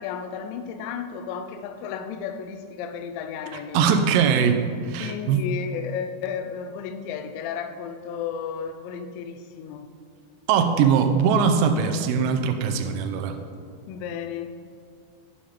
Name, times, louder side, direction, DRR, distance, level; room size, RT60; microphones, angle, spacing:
voice 1, 0.0-3.9 5.0-9.9 13.9-14.6, left 7 dB, 80° left, 8 dB, 2.8 m, -33 dB
voice 2, 3.7-5.4 10.5-13.4, right 6 dB, 85° right, 6 dB, 2.5 m, -21 dB
10.0 x 5.6 x 5.0 m, 2.2 s
omnidirectional pair, 5.4 m